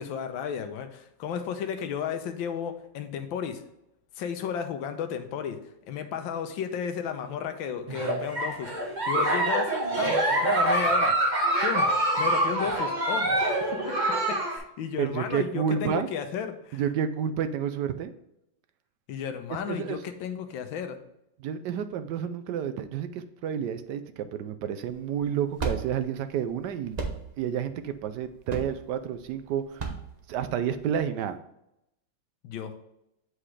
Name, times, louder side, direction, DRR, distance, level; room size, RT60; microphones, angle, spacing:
voice 1, 0.0-3.6 4.2-5.6 5.9-10.2 10.4-11.1 11.6-11.9 12.2-13.3 13.7-14.0 14.3-16.8 19.1-21.0 32.4-32.7, left 7 dB, 80° left, 7 dB, 1.5 m, -33 dB
Giggle, 7.9-14.6, right 1 dB, 25° right, 1.2 m, -25 dB
voice 2, 15.0-16.1 16.7-18.1 19.7-20.0 21.4-27.0 27.4-29.9 30.3-31.4, right 8 dB, 70° right, 10 dB, 1.1 m, -30 dB
sound 1, 24.8-31.0, right 4 dB, 45° right, 0.5 m, -36 dB
7.7 x 4.9 x 3.2 m, 0.83 s
omnidirectional pair, 2.2 m